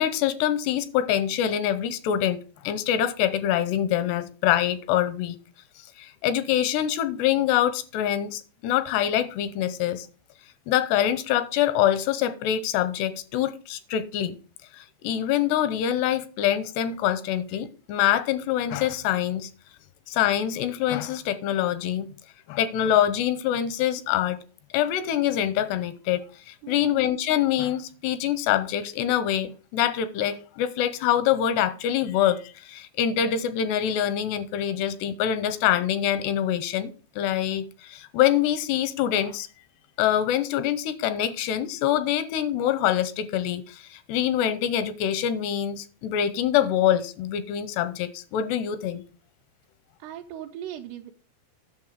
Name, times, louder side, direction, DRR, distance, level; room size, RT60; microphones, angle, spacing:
voice 1, 0.0-5.4 6.0-10.1 10.7-14.4 14.7-19.5 20.1-22.1 22.5-24.4 24.7-39.5 40.0-49.0, left 10 dB, 85° left, 2.8 m, -25 dB
voice 2, 26.6-27.0 50.0-51.1, right 11 dB, 80° right, 2.7 m, -38 dB
9.6 x 6.5 x 4.8 m
omnidirectional pair, 4.8 m